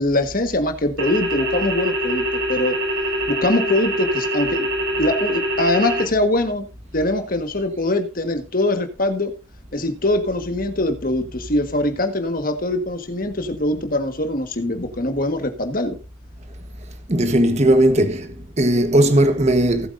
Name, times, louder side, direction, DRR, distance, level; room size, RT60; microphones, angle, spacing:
voice 1, 0.0-2.8 3.3-4.7 5.0-6.7 6.9-9.4 9.7-16.0, left 1 dB, 45° left, 1.5 m, -22 dB
sound 1, 1.0-6.0, right 1 dB, 70° right, 3.9 m, -24 dB
voice 2, 17.1-19.9, right 1 dB, 35° right, 1.2 m, -17 dB
18.0 x 8.2 x 2.6 m
head